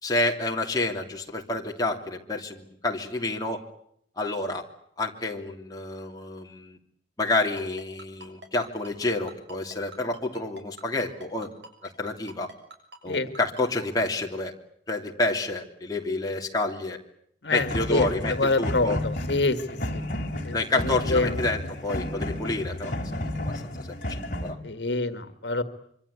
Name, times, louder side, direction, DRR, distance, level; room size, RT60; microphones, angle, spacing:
voice 1, 0.0-3.6 4.2-4.6 5.0-6.8 7.2-11.5 11.8-12.5 13.0-14.5 14.9-17.0 17.5-19.0 20.5-22.9 23.5-24.6, left 2 dB, 20° left, 0 dB, 3.0 m, -29 dB
Ringtone, 7.3-14.0, right 1 dB, 75° right, 7.2 m, -44 dB
voice 2, 17.4-19.6 19.9-20.0 20.4-21.3 24.6-25.6, left 3 dB, 80° left, 10 dB, 1.9 m, -26 dB
sound 1, 17.6-24.5, left 1 dB, 45° left, 3.4 m, -32 dB
26.5 x 24.5 x 8.3 m, 0.69 s
head